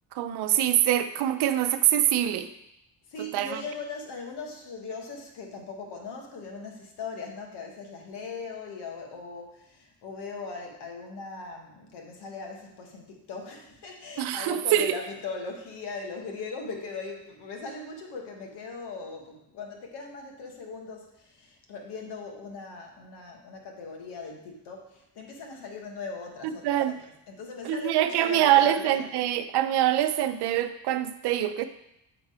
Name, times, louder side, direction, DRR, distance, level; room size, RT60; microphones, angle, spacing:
voice 1, 0.1-2.5 3.2-3.6 14.2-15.0 26.4-27.0 27.6-31.6, right 12 dB, 80° right, 9 dB, 0.7 m, -24 dB
voice 2, 3.1-27.0 27.3-29.1, left 4 dB, 80° left, 1 dB, 1.6 m, -39 dB
8.1 x 3.9 x 5.0 m, 0.81 s
cardioid pair, 90°, 40 cm